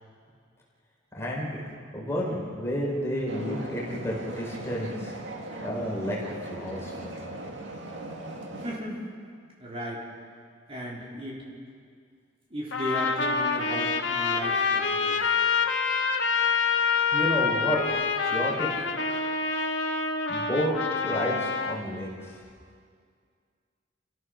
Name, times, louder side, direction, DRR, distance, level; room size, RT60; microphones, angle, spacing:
voice 1, 1.1-1.6 1.9-5.1 5.6-7.1 17.1-18.9 20.3-20.8 21.0-22.3, equal, 15° left, -4 dB, 4.3 m, -31 dB
sound 1, 3.3-8.8, right 1 dB, 70° right, 2.1 m, -39 dB
voice 2, 8.6-9.0 9.6-10.0 10.7-11.5 12.5-15.3, equal, 30° right, -4 dB, 3.8 m, -36 dB
Trumpet, 12.7-21.8, left 5 dB, 70° left, 1.5 m, -26 dB
30.0 x 14.5 x 6.4 m, 2.1 s
head